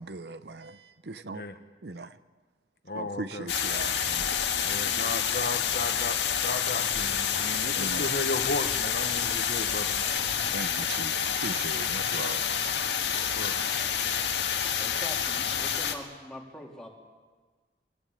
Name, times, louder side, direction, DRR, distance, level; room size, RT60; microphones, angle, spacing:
voice 1, 0.0-1.5 1.8-2.2 2.9-4.5 7.6-8.2 9.1-9.4 10.5-12.7 14.1-14.6, right 3 dB, 70° right, 0.8 m, -40 dB
voice 2, 2.9-3.5 4.6-9.9 13.1-13.6, left 2 dB, 60° left, 1.3 m, -35 dB
sound 1, 3.5-15.9, left 8 dB, 85° left, 1.9 m, -28 dB
sound 2, 4.0-10.9, left 1 dB, 35° left, 2.3 m, -49 dB
sound 3, 6.7-7.5 7.9-13.5, right 1 dB, 55° right, 2.9 m, -48 dB
voice 3, 14.8-16.9, left 1 dB, 5° left, 3.3 m, -43 dB
23.5 x 18.5 x 8.7 m
head